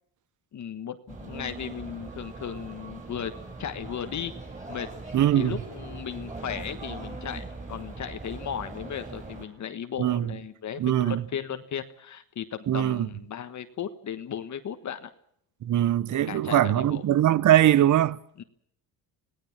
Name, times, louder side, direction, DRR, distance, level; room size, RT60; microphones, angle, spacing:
voice 1, 0.5-3.3 3.6-4.3 4.7-4.9 5.3-15.1 16.1-17.0 18.4-18.5, left 8 dB, 45° left, 1.4 m, -36 dB
sound 1, 1.1-9.4, right 2 dB, 20° right, 7.1 m, -40 dB
voice 2, 5.1-5.6 10.0-10.3 10.8-11.2 12.7-13.1 15.6-18.2, right 12 dB, 50° right, 1.0 m, -22 dB
26.5 x 18.0 x 7.3 m
cardioid pair, 135°, 39 cm